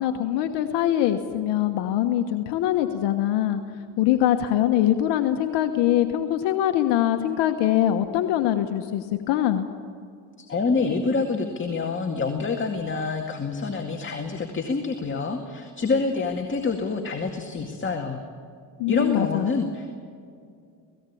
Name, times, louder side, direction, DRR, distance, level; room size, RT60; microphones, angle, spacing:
voice 1, 0.0-3.6 4.0-9.7 18.8-19.5, left 12 dB, 80° left, 6 dB, 1.3 m, -23 dB
voice 2, 10.4-18.2 18.9-19.9, left 4 dB, 30° left, 3 dB, 2.1 m, -27 dB
18.0 x 18.0 x 8.6 m, 2.3 s
supercardioid pair, 90°, 42 cm